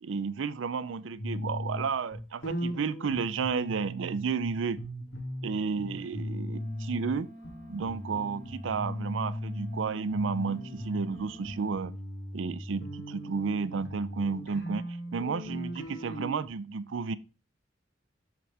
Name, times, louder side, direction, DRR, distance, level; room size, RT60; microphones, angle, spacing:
voice 1, 0.0-4.8 5.4-7.3 7.7-11.9 12.3-14.8 15.1-17.2, right 5 dB, 75° right, 0.5 m, -32 dB
sound 1, 1.2-4.5 4.8-7.1 7.4-9.8 10.1-16.5, equal, 80° left, 2.3 m, -38 dB
sound 2, 6.5-11.7, right 1 dB, 40° right, 1.1 m, -48 dB
7.8 x 6.0 x 3.3 m
head